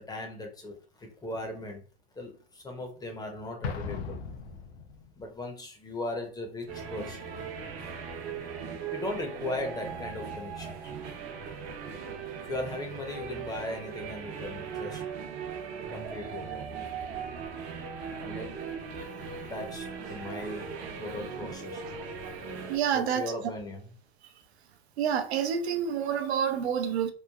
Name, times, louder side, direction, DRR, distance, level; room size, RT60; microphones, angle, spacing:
voice 1, 0.0-1.8 2.1-4.2 5.2-7.3 8.9-10.9 12.4-15.0 15.9-16.7 18.2-18.7 19.4-21.9 22.9-23.9, left 2 dB, 10° left, 0.5 m, -38 dB
Explosion, 3.6-5.3, left 5 dB, 85° left, 0.6 m, -37 dB
sound 1, 6.7-22.8, right 6 dB, 65° right, 0.9 m, -39 dB
voice 2, 22.7-23.3 25.0-27.1, right 8 dB, 85° right, 0.5 m, -28 dB
3.1 x 2.2 x 2.2 m
hypercardioid pair, 115°, 31 cm